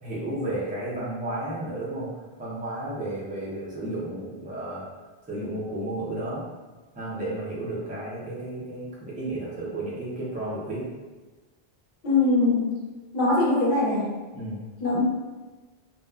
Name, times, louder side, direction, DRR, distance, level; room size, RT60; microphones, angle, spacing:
voice 1, 0.0-2.1 2.4-4.8 5.3-6.5 6.9-10.9 14.3-14.6, right 1 dB, 10° right, -7 dB, 0.5 m, -32 dB
voice 2, 12.0-12.8 13.1-14.1 14.8-15.0, left 2 dB, 55° left, -5 dB, 0.8 m, -22 dB
2.8 x 2.2 x 2.3 m, 1.3 s
omnidirectional pair, 1.0 m